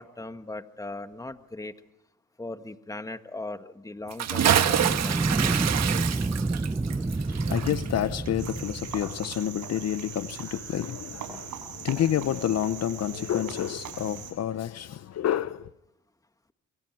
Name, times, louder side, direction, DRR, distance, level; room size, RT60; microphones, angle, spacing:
voice 1, 0.0-1.7 2.4-5.2, left 2 dB, 10° left, 1.6 m, -38 dB
Bathtub (filling or washing) / Splash splatter, 4.1-9.1 9.3-9.4, right 9 dB, 60° right, 1.6 m, -27 dB
sound 1, 4.4-9.3, right 3 dB, 15° right, 0.8 m, -29 dB
voice 2, 6.8-15.7, left 11 dB, 55° left, 0.8 m, -29 dB
Cricket, 8.4-14.3, right 8 dB, 80° right, 5.9 m, -41 dB
28.5 x 24.0 x 4.6 m
cardioid pair, 90°, 30 cm